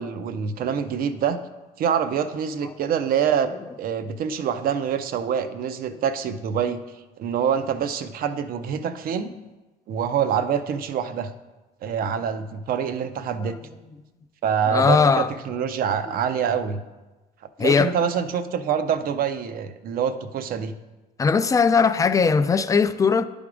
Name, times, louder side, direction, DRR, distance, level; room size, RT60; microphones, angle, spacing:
voice 1, 0.0-1.4 1.8-3.5 3.8-6.8 7.2-9.3 9.9-11.3 11.8-13.6 14.4-16.8 17.6-20.7, right 7 dB, 60° right, 0.6 m, -25 dB
voice 2, 14.7-15.3 17.6-17.9 21.2-23.3, left 5 dB, 20° left, 0.3 m, -19 dB
10.5 x 3.5 x 4.9 m
cardioid pair, 110°, 17 cm